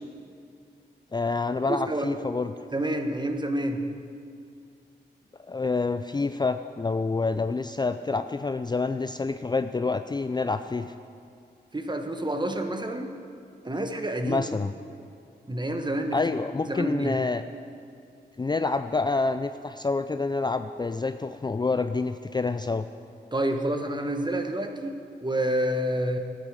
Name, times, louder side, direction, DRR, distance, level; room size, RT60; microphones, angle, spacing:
voice 1, 1.1-2.5 5.5-10.9 14.2-14.7 16.1-17.4 18.4-22.9, left 3 dB, 25° left, 10 dB, 0.4 m, -27 dB
voice 2, 1.7-2.1 2.7-3.9 11.7-13.1 13.6-14.4 15.5-16.2 16.7-17.2 23.3-24.9 25.2-26.2, right 1 dB, 25° right, 5 dB, 1.3 m, -28 dB
12.5 x 9.1 x 6.6 m, 2.4 s
cardioid pair, 50°, 19 cm